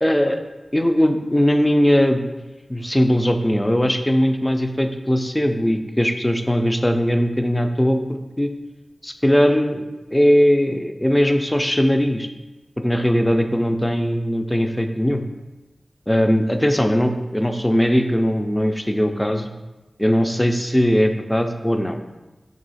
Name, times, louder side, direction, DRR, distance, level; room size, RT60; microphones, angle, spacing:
voice 1, 0.0-0.4 0.7-2.2 2.7-8.5 9.0-12.3 12.8-15.2 16.1-19.5 20.0-22.0, equal, 10° left, 6 dB, 0.3 m, -19 dB
3.7 x 2.7 x 4.1 m, 1.1 s
wide cardioid pair, 80°, 0 cm